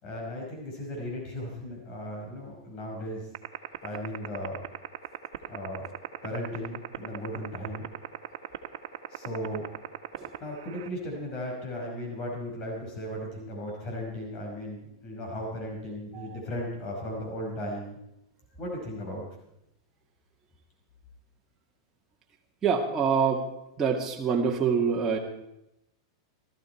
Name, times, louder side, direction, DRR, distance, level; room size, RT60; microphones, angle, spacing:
voice 1, 0.0-3.3 3.8-4.6 5.5-5.9 6.2-7.9 9.1-9.7 10.4-18.0 18.6-19.3, equal, 40° left, 0 dB, 5.2 m, -36 dB
sound 1, 3.3-10.9, right 14 dB, 70° right, 1.4 m, -34 dB
voice 2, 22.6-23.5 23.8-25.2, right 6 dB, 20° right, -2 dB, 2.2 m, -25 dB
18.0 x 13.5 x 4.5 m, 0.84 s
hypercardioid pair, 125°, 2 cm